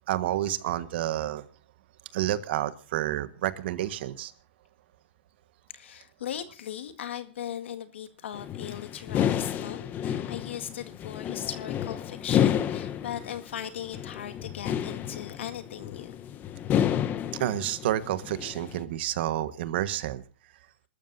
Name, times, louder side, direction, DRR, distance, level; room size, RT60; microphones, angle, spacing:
voice 1, 0.1-1.5 2.1-4.3 17.4-20.2, right 13 dB, 65° right, 12 dB, 1.6 m, -29 dB
voice 2, 5.7-16.1, left 10 dB, 80° left, 9 dB, 2.0 m, -38 dB
sound 1, 8.3-18.8, left 10 dB, 30° left, 1.0 m, -30 dB
27.5 x 13.5 x 2.7 m, 0.33 s
hypercardioid pair, 140°, 6 cm